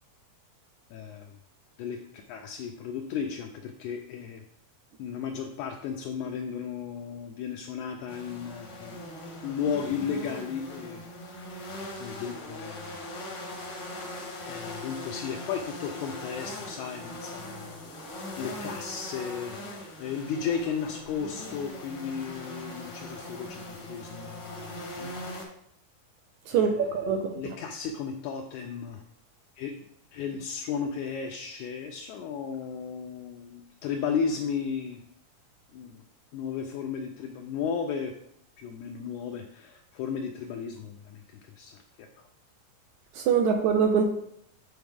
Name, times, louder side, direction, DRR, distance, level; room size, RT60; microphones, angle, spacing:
voice 1, 0.9-1.3 1.8-2.0 2.3-4.4 5.0-9.0 9.4-11.6 12.0-12.9 14.5-17.7 18.4-19.7 20.0-25.1 26.5-26.6 27.3-29.0 29.6-29.7 30.1-35.0 35.7-36.0 36.3-38.1 38.6-41.8 42.2-42.3, left 6 dB, 80° left, 4 dB, 1.8 m, -34 dB
sound 1, 8.1-25.5, left 1 dB, 60° left, 1.2 m, -40 dB
voice 2, 26.5-27.3 43.2-44.0, right 6 dB, 80° right, 5 dB, 1.7 m, -23 dB
8.0 x 3.9 x 3.5 m, 0.73 s
omnidirectional pair, 3.8 m